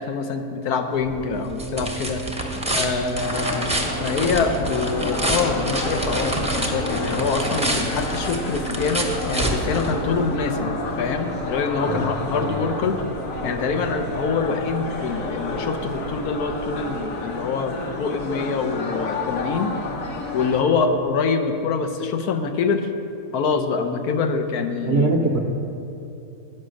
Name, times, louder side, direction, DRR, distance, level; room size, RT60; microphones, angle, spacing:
voice 1, 0.0-13.0 13.4-19.7 20.3-22.9 23.3-25.2, left 5 dB, 80° left, 7 dB, 1.2 m, -25 dB
sound 1, 0.9-10.4, right 1 dB, 5° right, 0.6 m, -28 dB
sound 2, 1.0-17.1, right 5 dB, 85° right, 1.1 m, -39 dB
sound 3, 3.1-20.6, left 2 dB, 65° left, 1.4 m, -30 dB
voice 2, 24.9-25.4, right 3 dB, 55° right, 1 dB, 0.8 m, -22 dB
10.0 x 5.8 x 6.3 m, 2.8 s
omnidirectional pair, 1.6 m